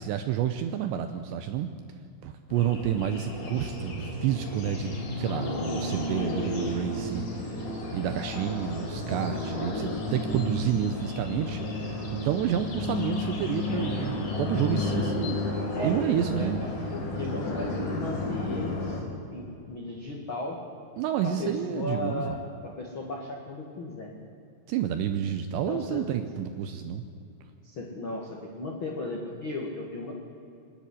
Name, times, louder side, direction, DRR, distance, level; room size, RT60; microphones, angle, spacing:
voice 1, 0.0-1.7 2.2-15.3 15.8-16.6 21.0-22.4 24.7-27.0, right 10 dB, 85° right, 8 dB, 2.6 m, -30 dB
sound 1, 2.5-19.0, left 2 dB, 50° left, 5.2 m, -32 dB
voice 2, 15.7-19.0 19.3-20.6 21.2-24.1 25.7-26.1 27.6-30.1, left 2 dB, 80° left, 0 dB, 1.1 m, -36 dB
26.0 x 10.5 x 10.0 m, 2.6 s
omnidirectional pair, 5.8 m